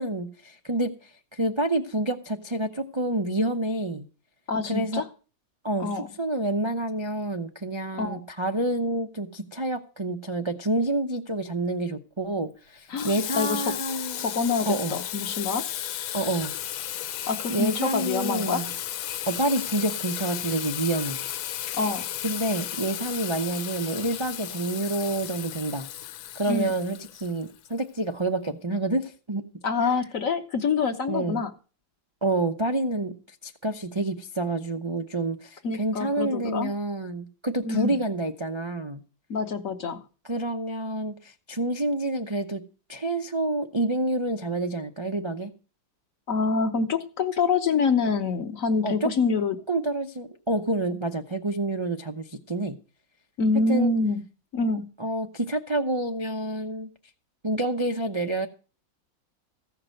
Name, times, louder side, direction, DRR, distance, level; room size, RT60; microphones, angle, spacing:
voice 1, 0.0-4.0 4.7-5.0 5.6-14.2 14.7-15.0 16.1-16.5 17.5-18.7 19.3-21.2 22.2-25.9 26.3-29.5 31.1-31.4 32.2-39.0 40.2-42.6 42.9-45.5 48.8-49.1 49.7-52.7 53.7-53.9 55.0-56.9 57.4-58.5, right 2 dB, 45° right, 4 dB, 0.3 m, -28 dB
voice 2, 4.5-5.0 5.8-6.1 8.0-8.2 12.9-13.6 14.2-15.6 17.3-18.6 21.8-22.1 26.5-26.7 29.6-31.5 35.6-36.7 37.6-37.9 39.3-40.0 46.3-49.5 53.4-54.2 54.5-54.8, left 4 dB, 50° left, 7 dB, 1.2 m, -26 dB
Water tap faucet / Sink (filling or washing), 13.0-27.7, left 11 dB, 90° left, 1.5 m, -34 dB
15.0 x 5.9 x 7.7 m, 0.37 s
omnidirectional pair, 2.1 m